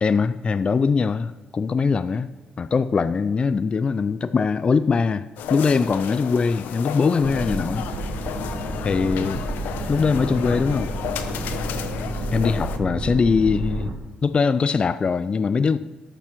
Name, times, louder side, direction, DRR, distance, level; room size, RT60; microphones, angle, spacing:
voice 1, 0.0-2.3 2.6-7.8 8.8-9.4 9.9-10.9 12.3-13.9 14.2-15.8, left 5 dB, 35° left, 0.4 m, -22 dB
sound 1, 5.4-12.8, left 8 dB, 85° left, 0.8 m, -33 dB
sound 2, 7.2-13.9, right 1 dB, 50° right, 1.4 m, -30 dB
12.5 x 6.8 x 5.9 m
cardioid pair, 85°, 3 cm